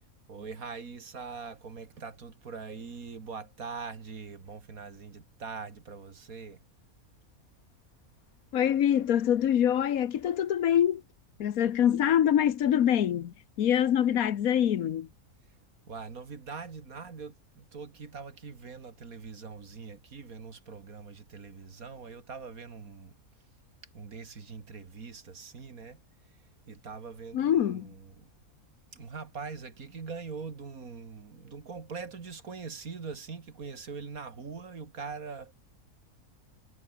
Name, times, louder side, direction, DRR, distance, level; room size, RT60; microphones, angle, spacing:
voice 1, 0.3-6.6 15.9-23.2 23.9-26.0 26.7-28.3 28.9-35.5, right 5 dB, 75° right, 2.7 m, -42 dB
voice 2, 8.5-11.0 11.4-15.1 27.3-27.9, left 10 dB, 75° left, 1.4 m, -25 dB
omnidirectional pair, 1.5 m